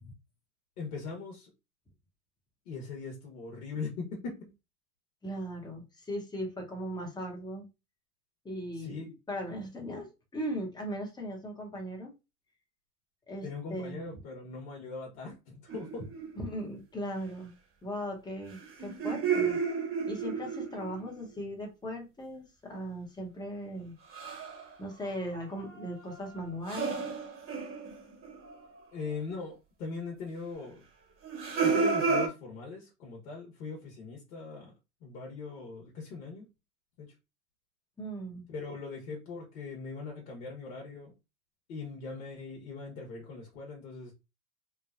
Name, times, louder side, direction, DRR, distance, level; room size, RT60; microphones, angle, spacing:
voice 1, 0.8-1.5 2.6-4.5 8.7-9.1 13.4-16.1 28.9-30.9 31.6-34.7 35.0-36.5 37.0-37.1 38.5-41.1 41.7-44.1, left 4 dB, 65° left, 1.1 m, -40 dB
voice 2, 5.2-7.7 8.4-9.0 9.3-12.1 13.3-14.1 16.4-17.5 17.8-19.6 20.1-23.9 24.8-27.1 38.0-38.4, equal, 10° left, 0.9 m, -38 dB
sound 1, 15.7-16.4 18.5-21.1 24.1-24.7 25.0-28.7 29.1-29.2 31.2-32.3, right 5 dB, 30° right, 1.2 m, -32 dB
3.1 x 2.1 x 2.4 m
hypercardioid pair, 110°, 46 cm